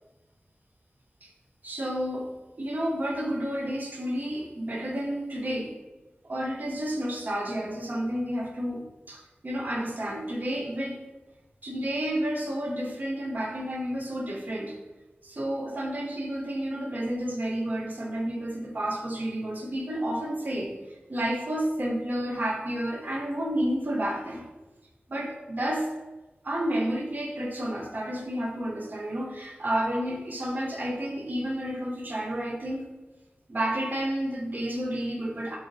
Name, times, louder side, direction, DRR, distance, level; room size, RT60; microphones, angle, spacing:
voice 1, 1.6-2.3 2.6-5.7 6.2-11.0 11.6-14.8 15.2-20.8 21.1-24.5 25.1-25.9 26.4-32.8 33.5-35.6, right 1 dB, 50° right, -1 dB, 0.5 m, -30 dB
2.9 x 2.4 x 2.4 m, 1.1 s
wide cardioid pair, 75°, 4 cm